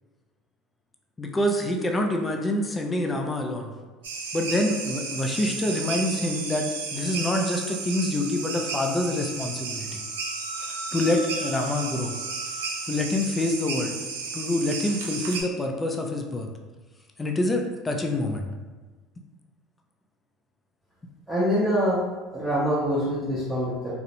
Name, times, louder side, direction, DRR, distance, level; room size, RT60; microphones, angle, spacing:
voice 1, 1.2-3.7 4.3-10.0 10.7-12.1 12.9-14.0 14.3-16.5 17.2-18.5, left 1 dB, 20° left, 3 dB, 0.4 m, -26 dB
sound 1, 4.0-15.4, right 4 dB, 90° right, 0.4 m, -33 dB
voice 2, 21.3-22.0 22.3-23.9, equal, 10° right, -10 dB, 0.7 m, -24 dB
2.5 x 2.0 x 2.8 m, 1.3 s
hypercardioid pair, 85°, 0 cm